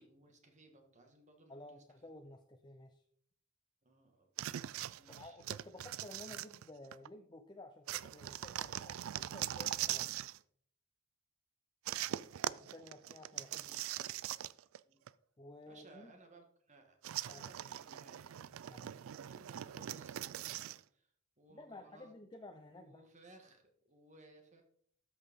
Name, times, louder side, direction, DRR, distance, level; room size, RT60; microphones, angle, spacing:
voice 1, 0.0-2.0 3.8-4.3 4.9-5.4 13.6-14.2 14.8-15.0 15.7-20.2 20.5-22.1 22.7-24.6, right 2 dB, 35° right, 4 dB, 1.6 m, -62 dB
voice 2, 1.5-3.0 5.1-10.1 12.6-13.6 15.4-16.1 17.3-17.5 18.7-18.9 21.5-23.1, left 2 dB, 20° left, 6 dB, 0.5 m, -53 dB
sound 1, 4.4-7.1 7.9-10.4 11.9-14.8 15.1-15.2 17.0-20.8, right 12 dB, 80° right, 0.3 m, -41 dB
13.0 x 6.3 x 3.6 m, 0.64 s
head